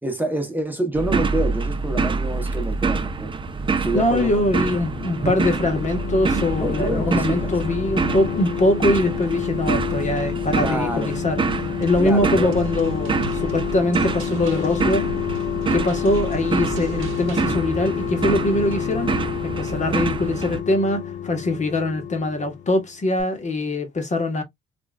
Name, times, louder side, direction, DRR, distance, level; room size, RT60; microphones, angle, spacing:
voice 1, 0.0-3.3 3.8-4.7 6.5-7.5 10.6-11.1 12.0-12.6, right 1 dB, 10° right, 1.1 m, -27 dB
sound 1, 1.0-20.6, right 4 dB, 25° right, 0.6 m, -26 dB
voice 2, 3.9-15.1 15.7-24.4, left 1 dB, 35° left, 1.2 m, -23 dB
sound 2, 4.7-22.9 23.2-23.3, left 10 dB, 70° left, 0.9 m, -29 dB
sound 3, 11.8-17.5, right 3 dB, 90° right, 0.8 m, -36 dB
4.5 x 2.6 x 2.2 m
cardioid pair, 90°, 20 cm